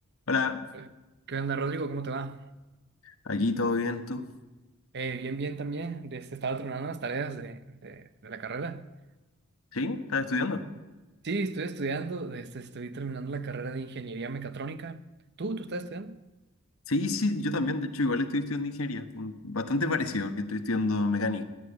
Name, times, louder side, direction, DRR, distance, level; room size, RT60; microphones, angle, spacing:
voice 1, 0.3-0.7 3.0-4.2 9.7-10.7 16.9-21.4, left 3 dB, 75° left, 1.2 m, -29 dB
voice 2, 1.3-2.5 4.9-8.9 11.2-15.0 15.4-16.2, right 4 dB, 55° right, 0.8 m, -34 dB
15.0 x 10.5 x 8.0 m
head